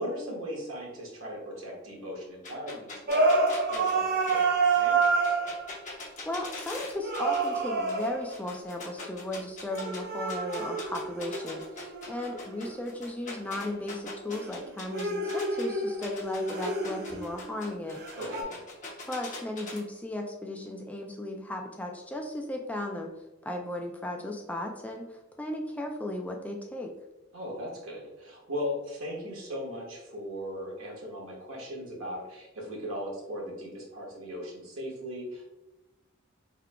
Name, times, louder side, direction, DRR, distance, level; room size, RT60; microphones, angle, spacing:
voice 1, 0.0-5.4 18.2-18.6 27.3-35.4, equal, 80° right, -3 dB, 1.4 m, -38 dB
sound 1, 2.4-7.6 7.9-10.0 10.3-15.6 16.0-19.8, left 3 dB, 35° left, 1.0 m, -42 dB
sound 2, 3.1-5.7 7.0-8.4 9.7-12.8 14.3-17.6 18.0-18.4, right 3 dB, 50° right, 0.6 m, -28 dB
voice 2, 6.3-18.0 19.0-23.1 23.4-26.9, left 1 dB, 5° left, 1 dB, 0.3 m, -36 dB
4.6 x 3.6 x 2.2 m, 0.99 s
head